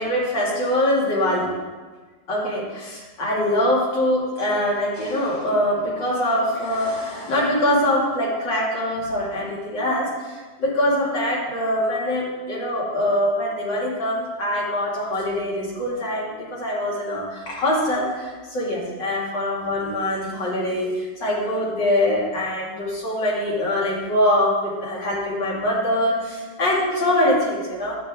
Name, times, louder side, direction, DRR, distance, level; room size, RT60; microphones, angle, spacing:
voice 1, 0.0-1.5 2.3-28.0, left 1 dB, 80° left, -5 dB, 3.0 m, -23 dB
11.0 x 8.4 x 3.6 m, 1.4 s
omnidirectional pair, 1.9 m